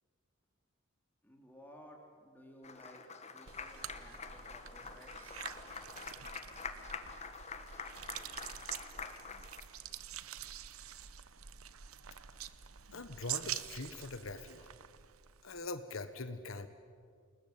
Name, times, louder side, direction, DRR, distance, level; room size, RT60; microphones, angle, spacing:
voice 1, 1.2-3.0 3.3-5.4, equal, 10° left, 1 dB, 3.9 m, -57 dB
Applause, 2.6-9.6, left 5 dB, 30° left, 1.5 m, -46 dB
sound 1, 3.5-15.7, right 11 dB, 85° right, 1.0 m, -46 dB
voice 2, 12.9-14.7 15.4-16.7, left 3 dB, 70° left, 10 dB, 1.3 m, -43 dB
29.0 x 19.5 x 8.9 m, 2.1 s
head